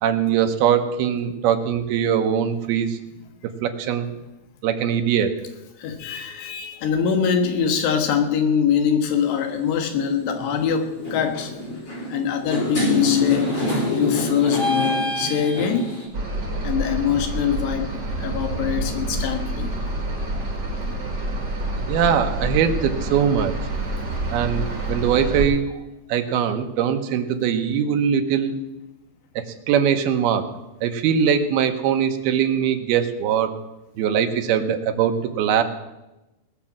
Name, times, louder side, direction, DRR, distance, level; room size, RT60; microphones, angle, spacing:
voice 1, 0.0-3.0 3.6-4.1 4.6-5.3 21.9-23.6 24.3-25.7 26.1-28.6 29.4-30.5 30.8-33.5 34.0-35.6, right 8 dB, 75° right, 6 dB, 2.8 m, -21 dB
voice 2, 5.8-11.5 12.1-13.5 13.9-16.0 16.6-19.7, left 7 dB, 85° left, 5 dB, 3.7 m, -23 dB
sound 1, 9.1-9.4 10.3-10.6 11.0-16.0, left 3 dB, 35° left, 4.8 m, -25 dB
sound 2, 16.1-25.4, right 2 dB, 25° right, 5.1 m, -27 dB
19.5 x 6.8 x 7.4 m, 0.99 s
omnidirectional pair, 4.7 m